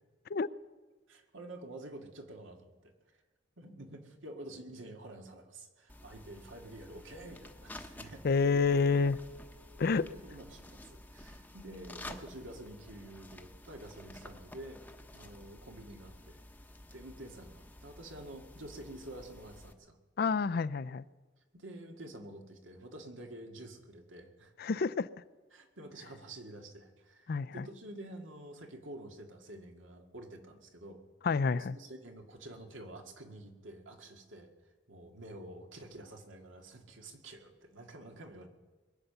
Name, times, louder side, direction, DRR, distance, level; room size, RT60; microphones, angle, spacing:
voice 1, 1.1-3.2 3.6-8.9 9.8-14.8 15.1-16.4 16.9-20.0 21.5-24.5 25.5-31.0 31.5-38.5, right 1 dB, 80° right, 2.1 m, -49 dB
sound 1, 5.9-19.7, left 1 dB, 10° left, 0.9 m, -51 dB
voice 2, 8.2-9.2 9.8-10.1 20.2-21.0 24.6-25.1 27.3-27.6 31.2-31.8, left 4 dB, 50° left, 0.4 m, -28 dB
22.0 x 9.1 x 6.9 m
head